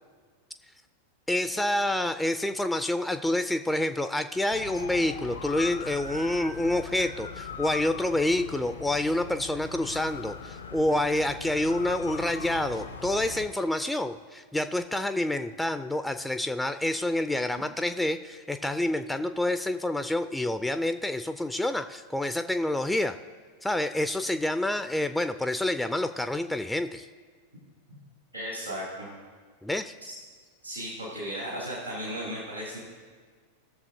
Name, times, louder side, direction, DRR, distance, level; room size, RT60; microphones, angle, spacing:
voice 1, 1.3-23.2 23.6-27.1 29.6-29.9, left 1 dB, 5° left, 9 dB, 0.3 m, -28 dB
sound 1, 4.5-13.5, left 5 dB, 75° left, 0.8 m, -40 dB
voice 2, 28.3-29.1 30.6-32.8, equal, 85° right, -6 dB, 2.5 m, -35 dB
17.5 x 6.8 x 2.7 m, 1.6 s
figure-of-eight pair, 90°, 0 cm